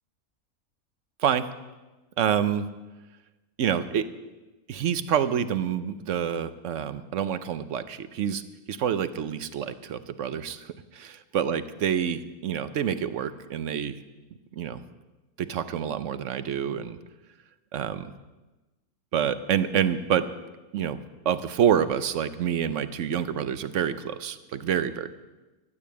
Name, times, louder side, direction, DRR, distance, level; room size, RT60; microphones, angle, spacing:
voice 1, 2.2-2.6 3.6-4.2 4.7-8.4 8.7-14.0 14.6-14.8 15.4-17.0 17.7-18.1 19.1-20.3 20.7-21.0 21.2-25.1, right 8 dB, 60° right, 13 dB, 0.9 m, -27 dB
13.0 x 8.6 x 8.4 m, 1.1 s
omnidirectional pair, 1.6 m